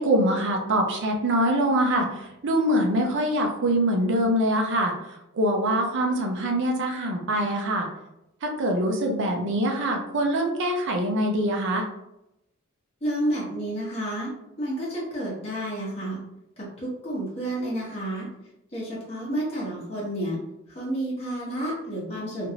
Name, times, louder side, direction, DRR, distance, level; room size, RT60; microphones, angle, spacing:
voice 1, 0.0-2.1 2.4-4.9 5.3-7.9 8.4-11.9, right 1 dB, 60° right, 2 dB, 0.5 m, -24 dB
voice 2, 13.0-14.3 14.6-16.2 16.8-18.2 18.7-20.4 20.7-22.5, right 1 dB, 30° left, -6 dB, 1.0 m, -30 dB
3.0 x 2.5 x 2.7 m, 0.87 s
head